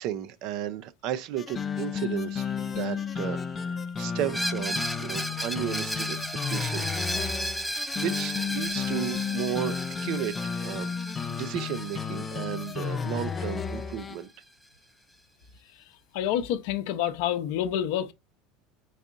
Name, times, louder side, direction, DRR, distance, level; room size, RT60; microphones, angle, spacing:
voice 1, 0.0-7.1 7.6-10.9 11.3-14.3, right 11 dB, 60° right, 0.5 m, -34 dB
sound 1, 1.4-14.2, left 6 dB, 30° left, 0.4 m, -33 dB
Screech, 4.3-13.9, equal, 5° right, 0.6 m, -35 dB
voice 2, 16.1-18.1, left 10 dB, 70° left, 0.6 m, -28 dB
4.1 x 3.5 x 2.5 m
hypercardioid pair, 95°, 0 cm